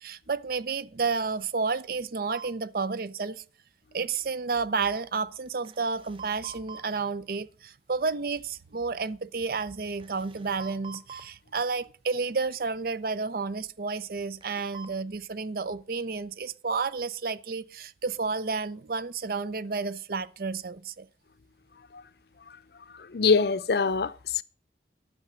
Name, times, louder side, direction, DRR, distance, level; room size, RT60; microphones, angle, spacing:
voice 1, 0.0-3.4 3.9-21.1, right 4 dB, 55° right, 0.5 m, -31 dB
sound 1, 2.3-2.5 5.5-6.8 8.3-8.4 10.0-11.2 14.4-14.9, right 6 dB, 30° right, 0.9 m, -45 dB
voice 2, 23.1-24.4, left 5 dB, 60° left, 0.6 m, -23 dB
10.5 x 6.7 x 6.2 m
head